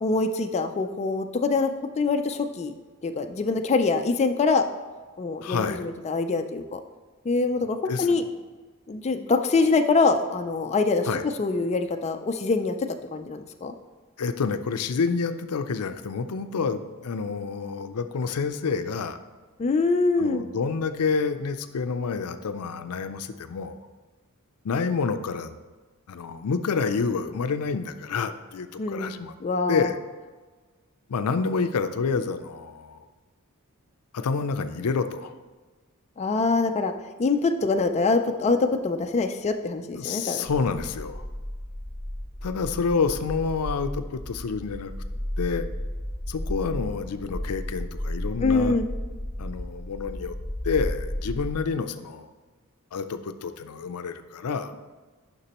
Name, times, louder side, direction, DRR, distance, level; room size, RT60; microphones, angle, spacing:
voice 1, 0.0-2.7 3.0-4.7 5.2-6.8 7.3-8.2 8.9-11.1 11.4-13.7 19.6-20.4 28.8-29.1 29.4-29.9 36.2-36.9 37.2-40.5 48.4-48.8, left 3 dB, 30° left, 6 dB, 0.4 m, -24 dB
voice 2, 5.4-5.8 7.9-8.3 11.0-11.2 14.2-19.2 20.2-23.8 24.6-25.6 26.1-29.4 29.7-30.0 31.1-33.1 34.1-35.3 39.9-41.3 42.4-44.9 45.4-45.6 46.3-48.8 49.4-50.4 50.6-52.3 52.9-54.7, left 5 dB, 90° left, 10 dB, 0.5 m, -28 dB
sound 1, 40.4-51.5, left 1 dB, 10° left, 1.1 m, -34 dB
9.8 x 5.9 x 2.9 m, 1.3 s
head